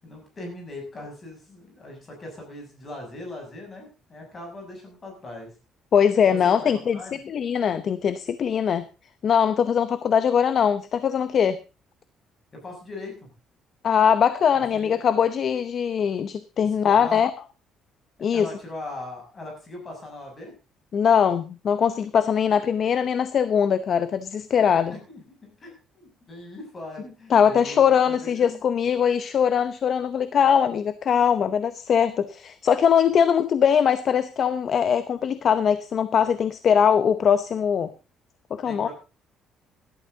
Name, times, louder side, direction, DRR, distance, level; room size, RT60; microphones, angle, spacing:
voice 1, 0.0-5.5 6.2-6.7 6.9-7.1 12.5-13.3 14.7-15.1 16.6-17.2 18.3-20.5 24.8-28.6 38.7-38.9, left 2 dB, 25° left, 1 dB, 7.5 m, -40 dB
voice 2, 5.9-7.0 7.3-8.9 9.2-11.6 13.8-17.3 18.2-18.5 20.9-24.9 27.3-37.9 38.5-38.9, left 7 dB, 40° left, 13 dB, 0.8 m, -21 dB
17.5 x 12.5 x 4.0 m, 0.32 s
cardioid pair, 165°, 0 cm